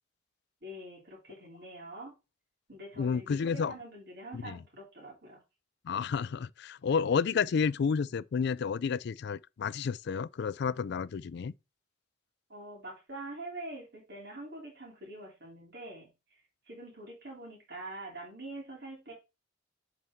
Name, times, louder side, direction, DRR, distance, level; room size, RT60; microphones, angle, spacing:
voice 1, 0.6-2.1 2.7-5.4 12.5-19.1, right 1 dB, 55° right, 3.1 m, -45 dB
voice 2, 3.0-3.7 4.3-4.6 5.8-11.5, left 6 dB, 60° left, 0.4 m, -31 dB
7.6 x 4.1 x 3.6 m
head